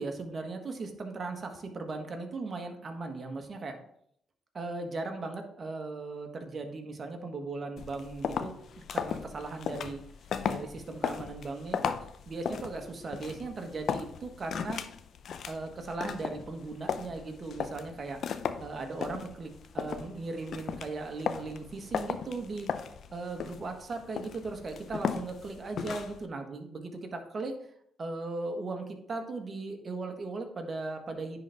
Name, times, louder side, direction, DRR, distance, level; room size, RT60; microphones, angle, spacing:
voice 1, 0.0-3.8 4.5-10.0 10.4-11.9 12.3-14.8 15.5-18.2 18.6-22.7 23.1-27.5 28.0-31.4, right 3 dB, 45° right, 4 dB, 1.4 m, -38 dB
sound 1, 7.8-26.2, left 7 dB, 65° left, 0.5 m, -36 dB
10.0 x 4.0 x 3.5 m, 0.68 s
supercardioid pair, 60°, 0 cm